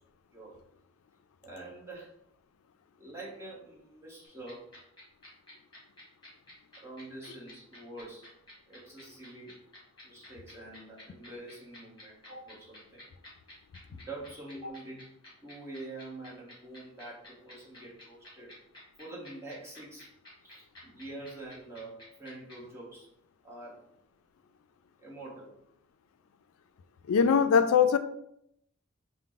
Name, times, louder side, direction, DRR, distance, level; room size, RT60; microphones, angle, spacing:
voice 1, 1.4-2.1 3.0-4.7 6.8-8.3 8.7-9.6 10.0-13.0 13.9-15.1 15.4-18.5 19.0-20.1 20.4-23.1 23.4-23.9 25.0-25.5, right 2 dB, 10° right, 1.0 m, -45 dB
sound 1, 4.2-22.5, left 1 dB, 20° left, 1.5 m, -51 dB
voice 2, 27.1-28.0, left 6 dB, 85° left, 0.3 m, -21 dB
4.5 x 2.1 x 3.7 m
head